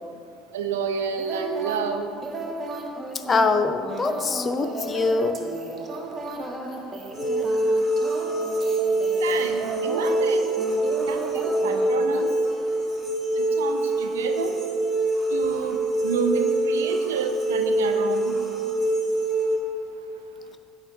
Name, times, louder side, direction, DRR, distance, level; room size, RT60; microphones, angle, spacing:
voice 1, 0.5-2.1 9.2-10.6 11.1-12.3 13.4-14.6 15.3-18.4, right 6 dB, 75° right, 6 dB, 0.5 m, -29 dB
sound 1, 1.2-12.2, right 2 dB, 30° right, 1.0 m, -34 dB
voice 2, 3.3-5.4, left 3 dB, 30° left, 8 dB, 0.6 m, -23 dB
sound 2, 7.1-19.6, right 1 dB, 10° right, 1.8 m, -24 dB
9.0 x 7.8 x 3.6 m, 2.5 s
hypercardioid pair, 65°, 0 cm